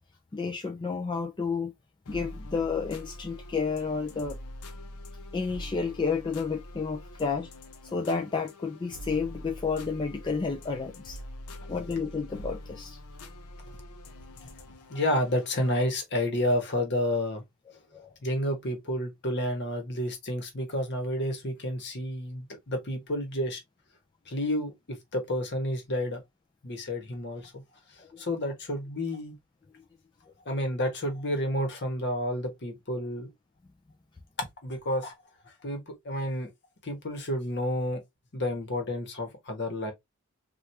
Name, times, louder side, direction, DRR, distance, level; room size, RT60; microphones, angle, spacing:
voice 1, 0.3-1.7 2.1-4.4 5.3-7.5 7.8-11.2 11.7-13.0 17.9-18.1 28.0-28.2, left 5 dB, 20° left, 0.4 m, -31 dB
sound 1, 2.1-15.9, left 1 dB, 75° left, 0.6 m, -44 dB
voice 2, 14.9-17.4 18.2-23.6 24.3-26.2 26.6-27.6 27.9-29.3 30.4-33.3 34.6-35.1 35.6-36.5 36.8-38.0 38.3-39.9, left 1 dB, 50° left, 1.1 m, -30 dB
3.3 x 2.4 x 2.7 m
head